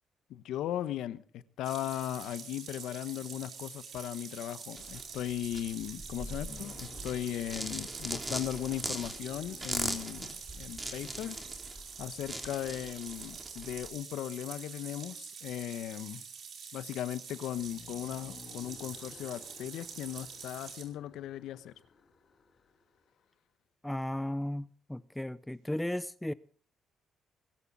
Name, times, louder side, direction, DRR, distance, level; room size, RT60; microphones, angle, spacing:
voice 1, 0.3-11.4 12.0-16.2 16.7-21.7, left 12 dB, 85° left, 1.1 m, -37 dB
sound 1, 1.6-20.8, right 6 dB, 65° right, 5.2 m, -46 dB
sound 2, 4.8-13.9, right 1 dB, 15° right, 3.5 m, -40 dB
sound 3, 6.1-11.3 17.5-23.2, left 5 dB, 55° left, 3.2 m, -55 dB
voice 2, 23.8-26.3, left 1 dB, 5° left, 0.6 m, -35 dB
21.0 x 13.5 x 4.1 m
cardioid pair, 90°, 0 cm